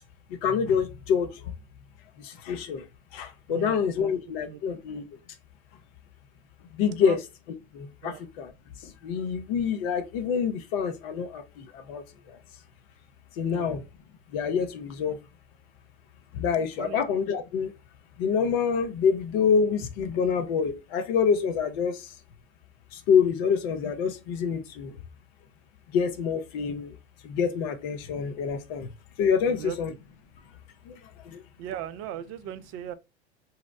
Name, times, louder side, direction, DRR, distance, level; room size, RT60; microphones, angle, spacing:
voice 1, 0.4-1.3 2.2-2.8 3.1-5.0 6.8-7.2 7.7-8.5 9.0-11.4 11.7-12.0 13.4-13.8 14.3-15.2 16.3-17.7 18.2-22.0 23.1-24.9 25.9-26.9 27.2-28.9 29.2-29.9 30.9-31.0 31.3-31.4, left 6 dB, 60° left, 0.7 m, -26 dB
voice 2, 3.5-4.1 4.5-4.8 7.0-7.2 8.0-8.2 13.5-13.7 16.8-17.0 29.4-29.8 31.6-32.9, right 11 dB, 45° right, 0.4 m, -38 dB
2.8 x 2.0 x 3.5 m
hypercardioid pair, 95°, 34 cm